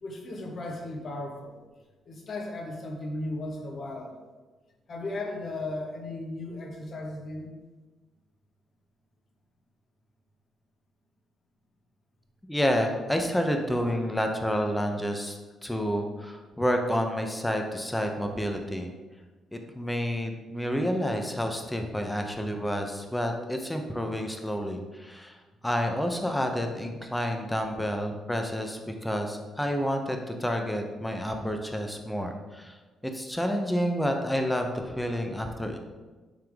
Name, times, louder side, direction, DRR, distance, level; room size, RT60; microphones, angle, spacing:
voice 1, 0.0-1.6 2.0-4.2 4.9-7.5, left 2 dB, 50° left, 0 dB, 1.4 m, -36 dB
voice 2, 12.4-18.9 19.5-25.4 25.6-32.8 33.1-35.8, equal, 5° left, 4 dB, 0.8 m, -29 dB
8.9 x 3.6 x 3.6 m, 1.3 s
cardioid pair, 90°, 0 cm